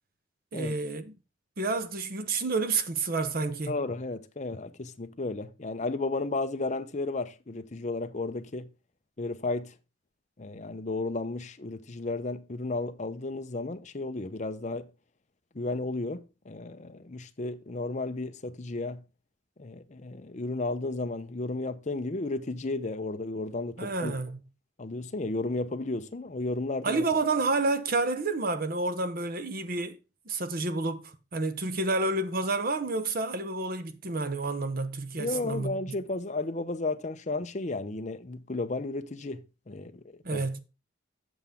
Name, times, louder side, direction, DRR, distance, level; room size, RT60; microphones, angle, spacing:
voice 1, 0.5-1.1 1.6-3.8 23.8-24.4 26.8-30.0 30.3-35.8 40.2-40.6, right 3 dB, 50° right, 0.9 m, -29 dB
voice 2, 3.7-8.7 9.2-9.7 10.4-14.9 15.5-19.0 19.6-24.2 24.8-27.0 35.2-40.0 40.3-40.4, left 2 dB, 40° left, 0.7 m, -33 dB
8.0 x 6.9 x 3.6 m
head